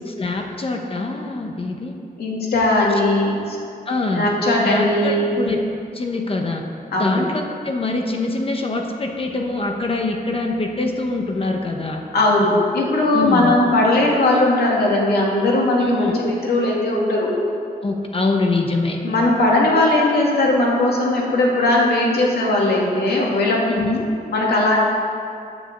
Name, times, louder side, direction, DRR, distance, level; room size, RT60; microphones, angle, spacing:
voice 1, 0.1-2.0 3.9-4.3 4.6-5.6 5.9-6.6 7.0-12.0 13.1-13.6 15.8-16.1 17.8-19.0 23.7-24.1, left 3 dB, 35° left, 2 dB, 0.9 m, -24 dB
voice 2, 2.2-3.6 4.1-5.2 6.9-7.2 12.1-17.3 19.0-23.6 24.3-24.8, left 2 dB, 85° left, -3 dB, 2.5 m, -18 dB
9.5 x 7.7 x 7.8 m, 2.4 s
wide cardioid pair, 150°, 16 cm